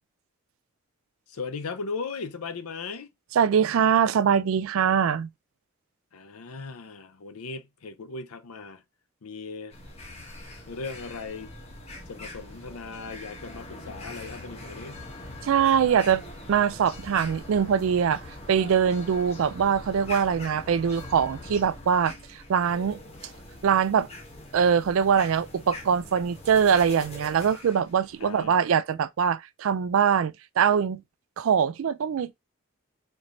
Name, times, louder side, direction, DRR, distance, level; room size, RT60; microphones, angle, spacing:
voice 1, 1.3-3.1 6.1-8.8 9.2-9.7 10.7-11.5 12.1-15.0 28.2-28.6, left 4 dB, 90° left, 0.6 m, -37 dB
voice 2, 3.3-5.3 15.4-16.2 16.5-18.2 18.5-23.0 23.6-24.1 24.5-31.0 31.4-32.3, right 7 dB, 65° right, 0.3 m, -23 dB
sound 1, 9.7-28.5, left 1 dB, 30° left, 0.9 m, -43 dB
4.3 x 3.1 x 2.5 m
head